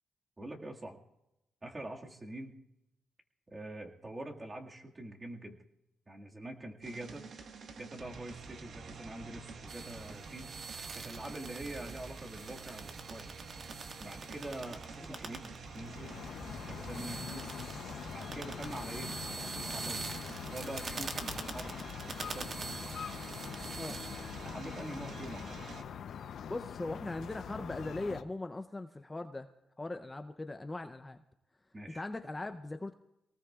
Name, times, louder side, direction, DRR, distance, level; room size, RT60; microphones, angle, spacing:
voice 1, 0.4-1.0 1.6-2.6 3.5-5.6 6.1-7.3 7.7-10.5 10.9-13.3 14.0-16.1 16.7-17.5 18.1-20.1 20.5-22.7 24.4-25.7 31.7-32.0, right 1 dB, 25° right, 0 dB, 2.0 m, -45 dB
sound 1, 6.8-25.8, right 4 dB, 70° right, 1.5 m, -48 dB
sound 2, 9.7-24.5 24.9-25.3, right 4 dB, 50° right, 1.7 m, -45 dB
sound 3, 15.6-28.2, left 8 dB, 75° left, 0.7 m, -44 dB
voice 2, 26.5-29.5 29.8-31.2 31.9-32.9, left 2 dB, 20° left, 7 dB, 0.6 m, -40 dB
27.0 x 19.0 x 2.4 m, 0.85 s
cardioid pair, 100°, 0 cm